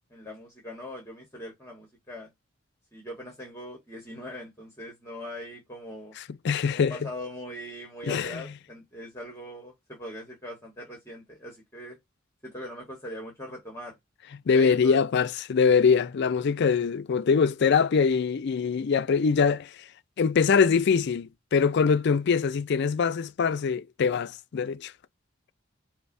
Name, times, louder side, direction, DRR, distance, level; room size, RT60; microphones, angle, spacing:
voice 1, 0.0-2.3 2.9-6.2 6.7-12.0 12.4-13.9 14.5-15.0, left 1 dB, 15° left, 1.3 m, -41 dB
voice 2, 6.2-7.0 8.0-8.4 14.5-19.7 20.2-24.9, left 5 dB, 55° left, 0.4 m, -23 dB
5.3 x 2.1 x 2.6 m
head